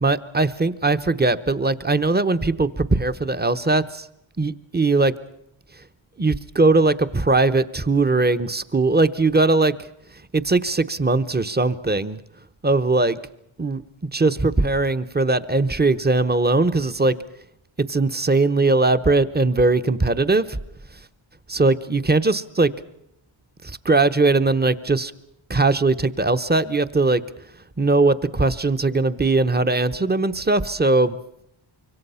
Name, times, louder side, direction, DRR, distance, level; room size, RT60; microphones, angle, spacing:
voice 1, 0.0-4.1 4.4-5.1 6.2-9.9 10.3-12.2 12.6-13.2 13.6-13.8 14.1-17.1 17.8-20.6 21.5-22.7 23.6-25.1 25.5-27.2 27.8-31.2, right 3 dB, 20° right, 12 dB, 0.9 m, -20 dB
26.0 x 24.0 x 5.6 m, 0.80 s
wide cardioid pair, 125°, 49 cm